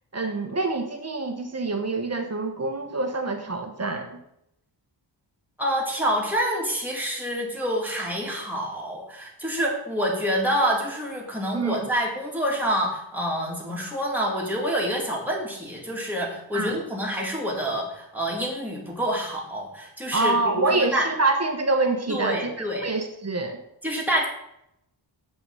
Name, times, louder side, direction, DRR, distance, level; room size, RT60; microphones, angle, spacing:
voice 1, 0.1-4.2 11.5-11.8 16.5-16.8 20.1-22.4 22.8-23.6, right 3 dB, 35° right, 5 dB, 1.3 m, -26 dB
voice 2, 5.6-21.1 22.1-22.9 23.8-24.3, equal, 5° right, -3 dB, 2.5 m, -27 dB
7.9 x 5.8 x 5.6 m, 0.78 s
wide cardioid pair, 120°, 45 cm